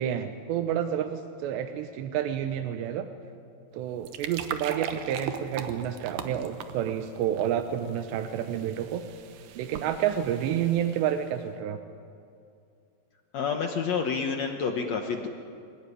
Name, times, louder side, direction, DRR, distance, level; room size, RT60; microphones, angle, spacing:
voice 1, 0.0-3.1 3.7-9.0 9.5-11.8, right 10 dB, 85° right, 8 dB, 3.1 m, -29 dB
sound 1, 3.8-11.3, right 8 dB, 65° right, 2.1 m, -40 dB
voice 2, 13.3-15.3, left 5 dB, 75° left, 4 dB, 1.6 m, -29 dB
22.0 x 19.5 x 10.0 m, 2.5 s
omnidirectional pair, 4.9 m